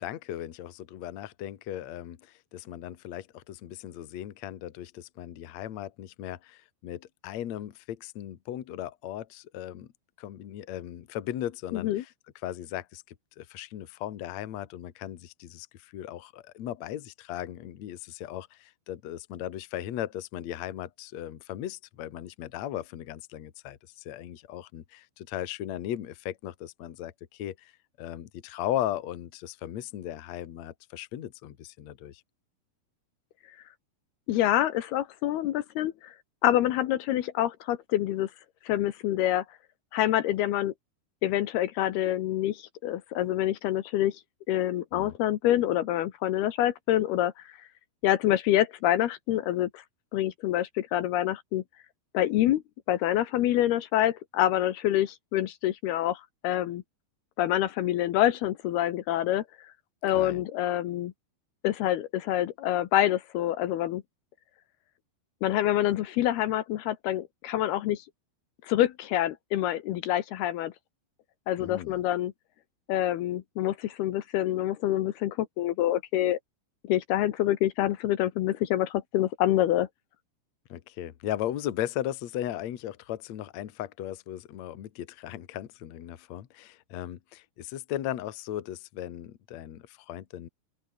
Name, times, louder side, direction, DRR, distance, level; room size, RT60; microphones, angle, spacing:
voice 1, 0.0-9.9 10.2-12.1 12.4-13.0 13.4-27.7 28.0-32.2 44.9-45.1 60.1-60.4 71.6-72.0 80.7-90.5, left 12 dB, 55° left, 2.2 m, -37 dB
voice 2, 11.7-12.0 34.3-36.1 36.4-38.3 38.7-39.4 39.9-40.7 41.2-44.2 44.5-47.5 48.0-49.8 50.1-51.6 52.1-52.6 52.9-56.8 57.4-59.4 60.0-61.1 61.6-64.0 65.4-68.0 68.6-70.7 71.5-72.3 72.9-76.4 76.8-79.9, left 13 dB, 75° left, 3.0 m, -26 dB
open air
omnidirectional pair, 4.9 m